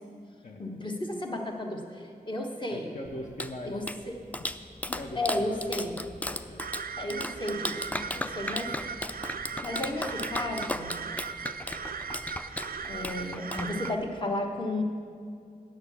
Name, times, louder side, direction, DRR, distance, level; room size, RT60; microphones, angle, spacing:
voice 1, 0.6-2.9 3.6-3.8 5.1-6.0 7.0-8.7 9.6-10.9 12.9-14.8, left 1 dB, 30° left, 1 dB, 1.2 m, -33 dB
voice 2, 2.7-3.8 4.4-4.5 4.9-5.6 6.3-6.6, left 1 dB, 55° left, 0 dB, 0.8 m, -41 dB
Clapping, 3.0-14.2, left 1 dB, 10° left, 0.4 m, -36 dB
sound 1, 6.6-13.9, right 6 dB, 70° right, 0.4 m, -38 dB
9.2 x 6.7 x 8.4 m, 2.3 s
wide cardioid pair, 85°, 16 cm